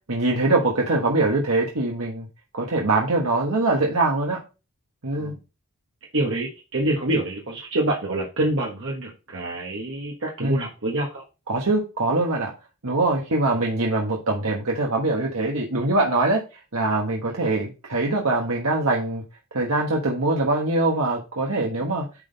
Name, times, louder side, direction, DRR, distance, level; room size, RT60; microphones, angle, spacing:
voice 1, 0.1-2.3 2.5-4.4 5.0-5.3 10.4-10.7 11.5-12.5 12.8-19.2 19.5-22.0, right 2 dB, 75° right, -1 dB, 1.3 m, -23 dB
voice 2, 6.1-11.2, right 1 dB, 60° right, -1 dB, 1.3 m, -26 dB
9.7 x 3.8 x 4.0 m, 0.30 s
head